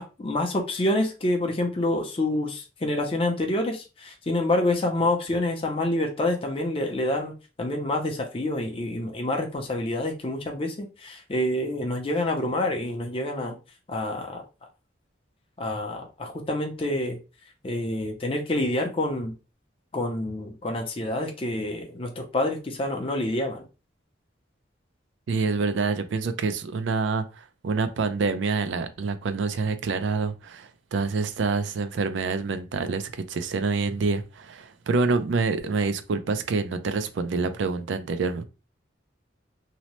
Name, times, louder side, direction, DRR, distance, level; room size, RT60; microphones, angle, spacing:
voice 1, 0.0-7.3 7.6-13.6 13.9-14.4 15.6-17.2 17.6-19.3 19.9-23.6, left 1 dB, 30° left, 0.5 m, -27 dB
voice 2, 25.3-38.4, right 4 dB, 75° right, 0.4 m, -27 dB
2.7 x 2.0 x 2.9 m
head